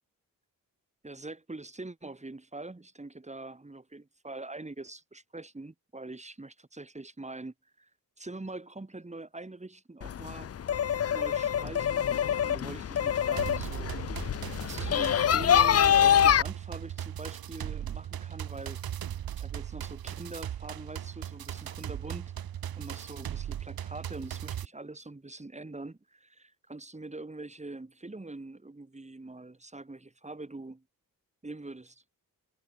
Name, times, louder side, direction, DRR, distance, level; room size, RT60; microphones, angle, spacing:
voice 1, 1.0-7.9 8.2-10.5 11.1-12.1 12.4-14.3 14.6-18.8 19.4-22.3 22.7-30.8 31.4-32.0, right 2 dB, 20° right, 2.6 m, -44 dB
sound 1, 10.0-16.4, left 9 dB, 45° left, 0.5 m, -25 dB
sound 2, 13.4-24.7, right 10 dB, 75° right, 1.1 m, -38 dB
cardioid pair, 65°, 36 cm